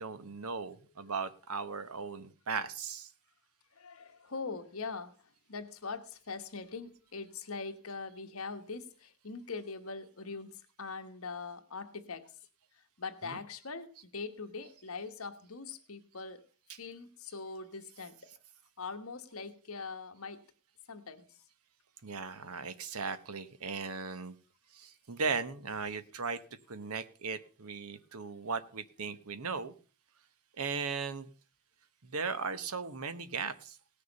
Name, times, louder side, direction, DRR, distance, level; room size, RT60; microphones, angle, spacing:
voice 1, 0.0-3.1 13.2-13.4 14.0-14.1 16.7-16.8 18.3-18.4 22.0-24.4 24.7-26.4 26.7-29.7 30.6-31.3 32.0-33.8, right 5 dB, 75° right, 1.0 m, -37 dB
voice 2, 3.7-5.1 5.5-12.3 13.0-16.4 16.8-18.3 18.8-20.4 20.9-21.3, left 4 dB, 70° left, 1.3 m, -42 dB
18.0 x 6.7 x 5.3 m
head